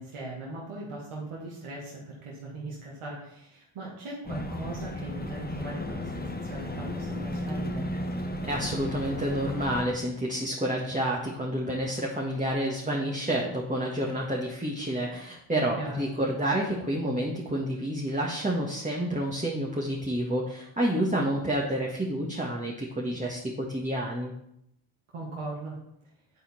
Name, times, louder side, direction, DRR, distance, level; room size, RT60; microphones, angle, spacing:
voice 1, 0.0-7.9 15.8-16.1 25.1-25.8, right 2 dB, 80° right, -4 dB, 1.8 m, -39 dB
sound 1, 4.3-9.9, left 1 dB, 20° left, 1.3 m, -34 dB
voice 2, 8.4-24.3, right 1 dB, 15° right, -3 dB, 1.6 m, -29 dB
9.1 x 4.3 x 4.2 m, 0.76 s
supercardioid pair, 45°, 50 cm